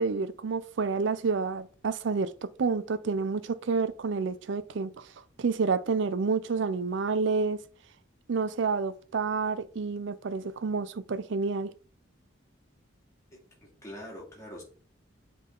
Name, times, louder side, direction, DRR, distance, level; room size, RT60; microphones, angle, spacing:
voice 1, 0.0-2.3 2.6-5.1 5.4-7.6 8.3-11.7, right 4 dB, 60° right, 0.4 m, -29 dB
voice 2, 13.3-14.6, equal, 15° left, 2.4 m, -44 dB
7.5 x 3.8 x 3.7 m
head